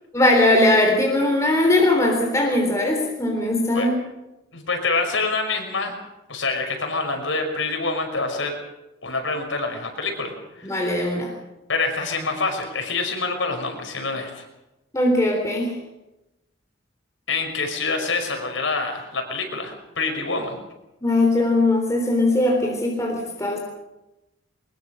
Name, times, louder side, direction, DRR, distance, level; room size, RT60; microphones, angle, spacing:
voice 1, 0.1-4.0 10.6-11.3 14.9-15.7 21.0-23.6, left 1 dB, 15° left, 1 dB, 3.7 m, -20 dB
voice 2, 4.5-5.9 6.3-8.5 9.0-10.8 11.7-14.5 17.3-20.6, left 3 dB, 80° left, 4 dB, 5.7 m, -26 dB
22.5 x 21.5 x 6.5 m, 0.97 s
head